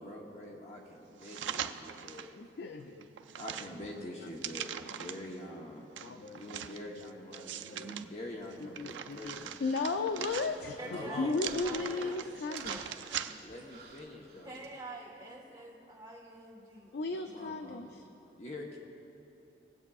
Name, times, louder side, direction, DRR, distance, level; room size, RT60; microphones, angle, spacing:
voice 1, 0.0-2.3 3.0-5.9 6.3-9.5 10.1-10.3 10.8-11.5 11.8-12.1 13.4-14.6 17.1-18.0 18.4-18.8, left 1 dB, 35° left, -1 dB, 0.9 m, -45 dB
sound 1, 1.2-2.3 2.8-5.3 6.0-8.0 8.5-10.8 11.3-13.6 14.0-14.1, right 9 dB, 80° right, 0.4 m, -41 dB
voice 2, 2.3-3.1 6.0-6.4 7.7-7.9 8.8-12.9 16.9-18.0, left 3 dB, 60° left, 6 dB, 0.4 m, -35 dB
Human voice, 8.4-14.7, right 4 dB, 55° right, 1.5 m, -52 dB
voice 3, 10.8-11.3 11.6-13.4 14.4-17.0, right 2 dB, 20° right, -3 dB, 1.4 m, -47 dB
20.5 x 7.9 x 2.4 m, 2.8 s
head